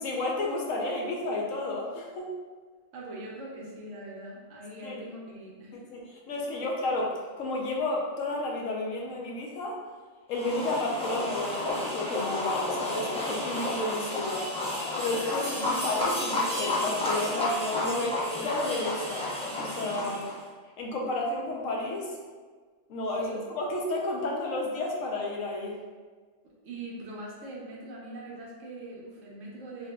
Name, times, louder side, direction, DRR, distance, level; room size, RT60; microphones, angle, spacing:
voice 1, 0.0-2.3 4.8-5.0 5.9-9.8 10.3-19.3 19.6-20.3 20.8-22.2 22.9-25.8, left 2 dB, 85° left, -1 dB, 1.0 m, -32 dB
voice 2, 2.9-5.8 23.2-23.4 26.4-29.9, right 1 dB, 75° right, -3 dB, 1.1 m, -42 dB
sound 1, 10.3-20.4, left 2 dB, 10° left, 0.4 m, -31 dB
3.9 x 2.7 x 2.2 m, 1.5 s
omnidirectional pair, 1.3 m